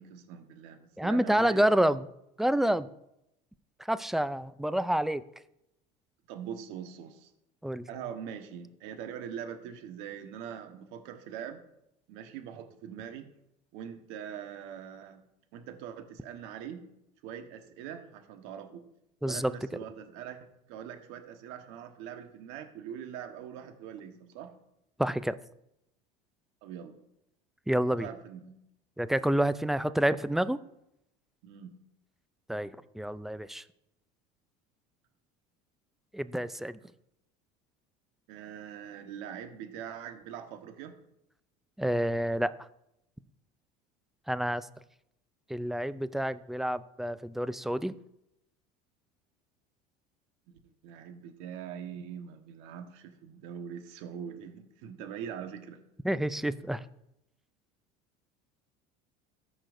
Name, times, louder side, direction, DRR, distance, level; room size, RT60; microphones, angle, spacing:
voice 1, 0.0-1.9 6.3-7.3 7.9-11.6 12.1-13.3 13.7-15.2 15.5-16.8 17.2-18.8 19.2-24.5 26.6-27.0 27.9-28.6 31.4-31.7 38.3-41.0 50.8-55.8, right 8 dB, 75° right, 6 dB, 1.3 m, -42 dB
voice 2, 1.0-2.0 2.4-2.9 3.9-5.2 7.6-7.9 19.2-19.5 25.0-25.3 27.7-28.1 29.0-30.6 32.5-33.6 36.1-36.8 41.8-42.5 44.3-44.7 45.5-47.9 56.0-56.8, right 1 dB, ahead, 14 dB, 0.3 m, -28 dB
14.0 x 5.8 x 2.6 m, 0.82 s
supercardioid pair, 105°, 20 cm